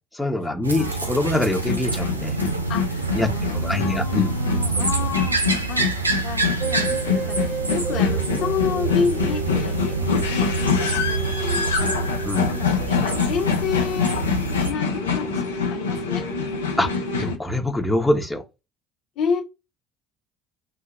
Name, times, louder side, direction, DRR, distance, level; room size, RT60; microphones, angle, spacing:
voice 1, 0.1-2.4 3.1-3.3 3.5-4.3 12.2-12.5 16.8-16.9 17.2-18.4, left 1 dB, 5° left, 0.9 m, -24 dB
sound 1, 0.6-14.7, right 4 dB, 85° right, 0.4 m, -27 dB
sound 2, 1.5-17.4, left 6 dB, 75° left, 0.6 m, -26 dB
voice 2, 2.7-5.8 6.2-10.0 10.3-12.1 12.5-14.2 14.6-16.2 19.2-19.4, left 6 dB, 55° left, 1.0 m, -30 dB
sound 3, 6.6-13.9 14.3-14.4 14.6-14.7 14.9-17.2, right 3 dB, 35° right, 1.0 m, -33 dB
5.6 x 2.7 x 2.5 m
figure-of-eight pair, 60°, 0 cm